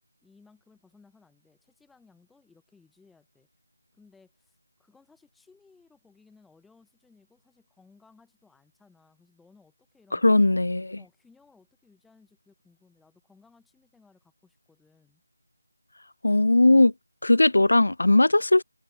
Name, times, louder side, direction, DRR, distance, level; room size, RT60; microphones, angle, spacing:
voice 1, 0.2-3.5 3.9-10.5 11.0-15.2, left 4 dB, ahead, 2.4 m, -60 dB
voice 2, 10.1-10.9 16.2-16.9 17.2-18.6, left 2 dB, 75° left, 0.5 m, -19 dB
figure-of-eight pair, 170°, 0 cm